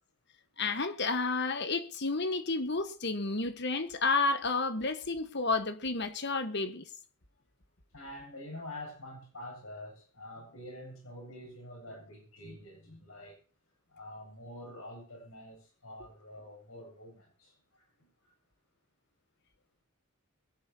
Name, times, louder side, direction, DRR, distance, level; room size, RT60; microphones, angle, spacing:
voice 1, 0.6-6.8, left 3 dB, 50° left, 1.4 m, -31 dB
voice 2, 7.9-13.4 13.9-18.3, left 1 dB, 70° left, 7.9 m, -47 dB
22.5 x 10.5 x 2.9 m
head